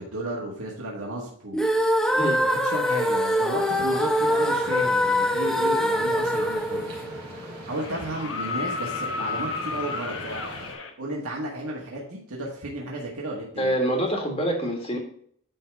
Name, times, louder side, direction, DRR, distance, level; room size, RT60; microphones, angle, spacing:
voice 1, 0.0-1.7 2.4-7.3 7.7-10.5 11.0-13.7, right 1 dB, 85° right, -3 dB, 1.8 m, -33 dB
sound 1, 1.5-7.7, equal, 5° left, 0.6 m, -24 dB
voice 2, 2.1-2.4 13.6-15.0, equal, 25° left, 2 dB, 1.7 m, -26 dB
sound 2, 3.6-10.7, equal, 30° right, 3.1 m, -42 dB
sound 3, 7.7-10.9 12.7-12.8, left 4 dB, 60° left, 1.0 m, -32 dB
9.9 x 3.8 x 4.8 m, 0.62 s
head